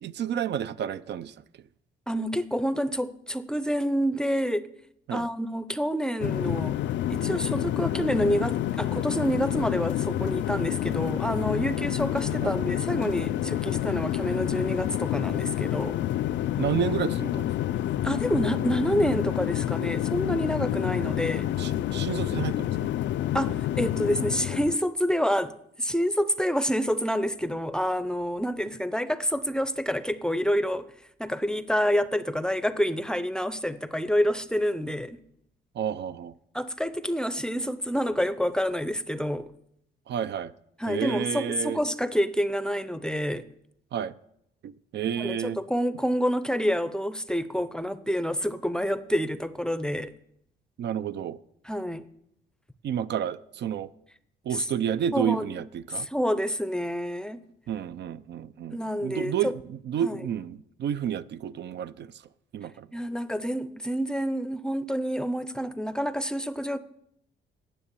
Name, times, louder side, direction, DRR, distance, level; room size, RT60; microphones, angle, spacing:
voice 1, 0.0-1.3 5.1-5.3 12.4-12.5 16.6-17.5 21.0-21.2 21.6-22.7 35.8-36.3 40.1-40.5 40.9-41.8 43.9-44.1 44.6-45.6 50.8-51.4 52.8-53.9 54.5-56.1 57.7-62.1 62.5-62.9, right 9 dB, 60° right, 0.5 m, -30 dB
voice 2, 2.1-4.7 5.1-6.8 7.1-16.0 18.0-21.5 23.3-30.9 31.2-35.2 36.5-39.5 40.8-43.5 45.2-50.1 51.6-52.1 54.5-54.7 55.1-55.5 55.9-57.4 58.7-59.6 60.0-60.2 62.9-66.8, equal, 5° left, 0.6 m, -28 dB
sound 1, 6.2-24.8, left 12 dB, 65° left, 0.4 m, -28 dB
9.9 x 7.4 x 6.8 m
cardioid pair, 90°, 20 cm